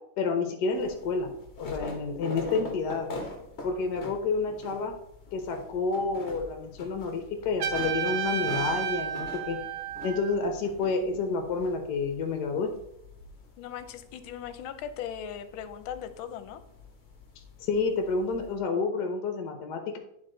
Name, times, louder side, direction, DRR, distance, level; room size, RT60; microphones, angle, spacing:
voice 1, 0.2-1.3 1.6-3.1 3.6-4.9 5.3-9.6 10.0-12.7 17.6-20.0, left 4 dB, 60° left, 5 dB, 1.2 m, -29 dB
sound 1, 0.7-18.6, left 2 dB, 40° left, 1.1 m, -44 dB
Trumpet, 7.6-10.5, right 10 dB, 75° right, 1.5 m, -32 dB
voice 2, 13.6-16.6, left 9 dB, 80° left, 11 dB, 1.4 m, -38 dB
9.6 x 4.1 x 3.8 m, 0.78 s
omnidirectional pair, 2.3 m